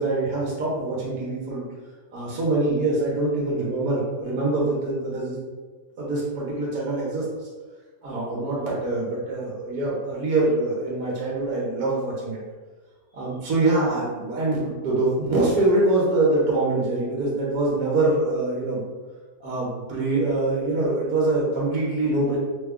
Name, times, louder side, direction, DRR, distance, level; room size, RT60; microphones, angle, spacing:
voice 1, 0.0-1.6 2.1-5.4 6.0-7.2 8.0-12.4 13.1-18.8 19.4-22.4, right 2 dB, 65° right, -5 dB, 1.3 m, -24 dB
3.3 x 2.2 x 3.5 m, 1.4 s
omnidirectional pair, 1.7 m